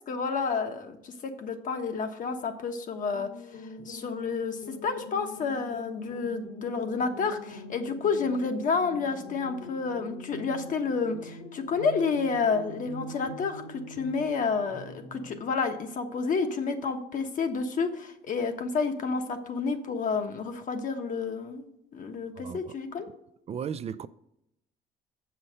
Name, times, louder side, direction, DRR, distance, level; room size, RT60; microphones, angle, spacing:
voice 1, 0.1-3.3 3.9-21.6 21.9-23.1, left 5 dB, 50° left, 1.3 m, -30 dB
sound 1, 3.1-15.3, left 1 dB, 70° left, 2.2 m, -44 dB
voice 2, 22.4-22.7 23.5-24.1, right 8 dB, 40° right, 0.4 m, -36 dB
7.5 x 5.7 x 6.6 m
cardioid pair, 110°, 17 cm